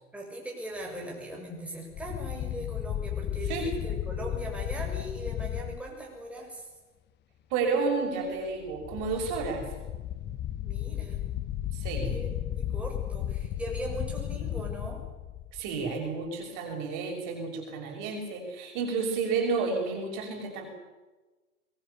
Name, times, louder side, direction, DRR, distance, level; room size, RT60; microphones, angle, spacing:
voice 1, 0.1-6.7 10.6-11.2 12.1-15.0, right 1 dB, 5° right, -1 dB, 6.4 m, -39 dB
sound 1, 1.9-5.8 8.6-15.9, left 12 dB, 25° left, 0.8 m, -34 dB
voice 2, 7.5-9.7 11.7-12.2 15.5-20.7, right 4 dB, 45° right, 3 dB, 6.2 m, -31 dB
23.5 x 20.5 x 6.9 m, 1.2 s
hypercardioid pair, 115°, 45 cm